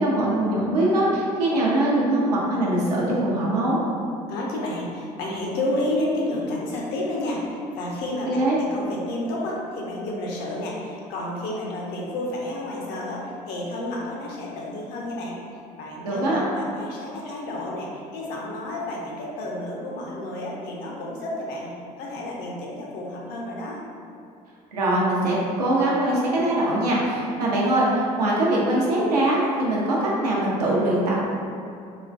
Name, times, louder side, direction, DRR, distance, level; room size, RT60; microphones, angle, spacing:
voice 1, 0.0-3.8 8.3-8.6 16.0-16.4 24.7-31.2, right 1 dB, 80° right, -5 dB, 0.5 m, -22 dB
voice 2, 4.3-15.4 15.8-23.8, left 1 dB, 55° left, -3 dB, 0.5 m, -30 dB
2.4 x 2.1 x 2.4 m, 2.4 s
figure-of-eight pair, 60°, 20 cm